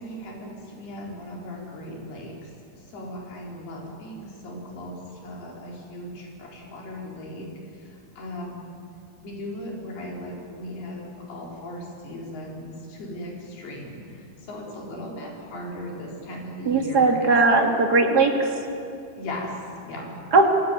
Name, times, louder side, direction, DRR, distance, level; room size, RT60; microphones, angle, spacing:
voice 1, 0.0-8.7 9.2-17.6 19.2-20.1, left 1 dB, 80° left, -2 dB, 6.1 m, -38 dB
voice 2, 16.7-18.6 20.3-20.5, right 3 dB, 30° right, 2 dB, 2.0 m, -19 dB
26.5 x 17.5 x 9.6 m, 2.5 s
omnidirectional pair, 4.5 m